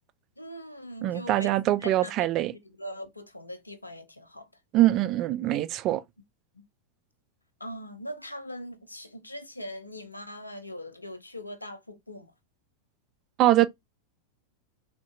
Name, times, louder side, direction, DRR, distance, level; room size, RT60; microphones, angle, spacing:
voice 1, 0.4-1.5 1.8-2.3 2.8-4.5 6.5-6.6 7.6-12.3, equal, 85° left, 0.6 m, -41 dB
voice 2, 1.0-2.5 4.7-6.0 13.4-13.7, right 14 dB, 35° right, 0.3 m, -23 dB
3.6 x 2.6 x 2.2 m
figure-of-eight pair, 90°, 0 cm